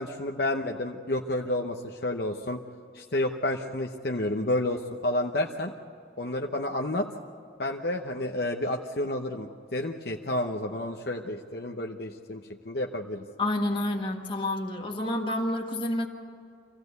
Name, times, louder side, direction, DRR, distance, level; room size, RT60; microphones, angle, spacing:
voice 1, 0.0-2.6 2.9-5.7 6.2-7.1 7.6-13.2, left 1 dB, 55° left, 2 dB, 0.9 m, -30 dB
voice 2, 13.4-16.1, left 1 dB, 25° left, 2 dB, 1.7 m, -29 dB
26.0 x 16.0 x 8.2 m, 2.4 s
head